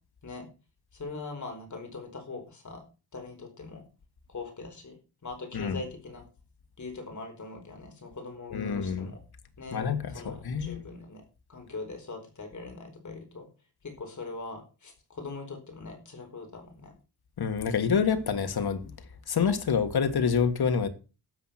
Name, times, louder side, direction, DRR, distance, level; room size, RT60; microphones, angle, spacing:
voice 1, 0.9-2.8 3.1-3.8 4.3-5.0 5.2-6.2 6.8-9.2 9.6-9.8 10.1-11.2 11.5-13.5 13.8-16.9, left 3 dB, 45° left, 4.7 m, -41 dB
voice 2, 8.5-9.1 9.7-10.8 17.4-18.8 19.3-20.9, left 6 dB, 70° left, 1.8 m, -27 dB
12.5 x 7.8 x 5.9 m
wide cardioid pair, 130°, 39 cm